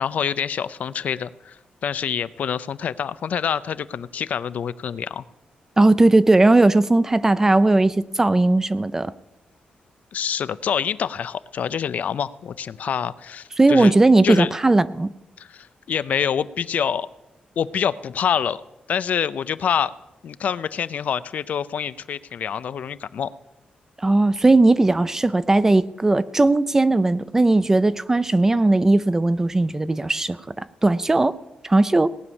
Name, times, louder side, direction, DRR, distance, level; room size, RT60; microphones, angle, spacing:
voice 1, 0.0-5.2 10.1-13.9 14.2-14.5 15.4-17.1 17.6-18.6 18.9-19.9 20.2-23.3, left 8 dB, 60° left, 15 dB, 0.5 m, -26 dB
voice 2, 5.8-9.1 13.6-15.1 24.0-31.4 31.6-32.1, right 2 dB, 15° right, 16 dB, 0.4 m, -18 dB
18.5 x 9.6 x 7.0 m, 0.94 s
wide cardioid pair, 150°, 3 cm